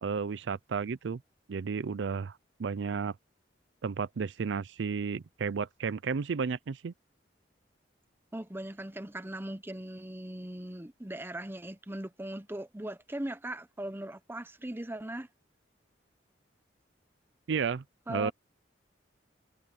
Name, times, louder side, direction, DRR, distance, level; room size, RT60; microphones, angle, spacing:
voice 1, 0.0-1.2 1.5-3.2 3.8-6.9 17.5-18.3, right 5 dB, 75° right, 0.5 m, -33 dB
voice 2, 8.3-15.3 18.1-18.3, right 1 dB, 10° right, 0.8 m, -39 dB
head